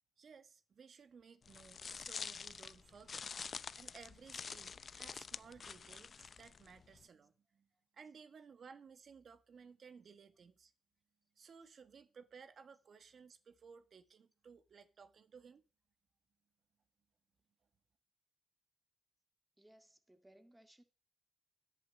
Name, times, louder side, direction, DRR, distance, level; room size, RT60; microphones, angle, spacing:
voice 1, 0.2-7.7 7.9-10.7 11.4-15.6, right 6 dB, 50° right, 1.5 m, -58 dB
sound 1, 1.4-7.0, left 6 dB, 40° left, 0.5 m, -47 dB
voice 2, 19.6-20.8, right 1 dB, 10° right, 1.9 m, -64 dB
11.0 x 7.3 x 8.5 m
cardioid pair, 90°, 0 cm